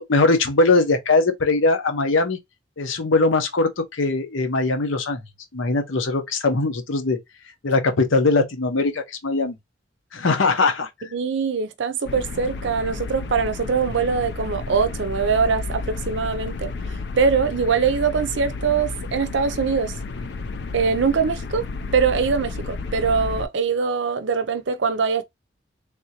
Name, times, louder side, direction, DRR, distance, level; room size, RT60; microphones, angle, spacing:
voice 1, 0.0-2.4 2.8-5.2 5.5-7.2 7.6-9.6 10.1-10.9, left 3 dB, 85° left, 0.8 m, -20 dB
voice 2, 11.1-16.7 17.2-19.9 20.7-21.6 21.9-25.2, right 5 dB, 70° right, 0.5 m, -22 dB
sound 1, 12.1-23.5, left 3 dB, 55° left, 0.4 m, -31 dB
3.5 x 2.7 x 2.8 m
head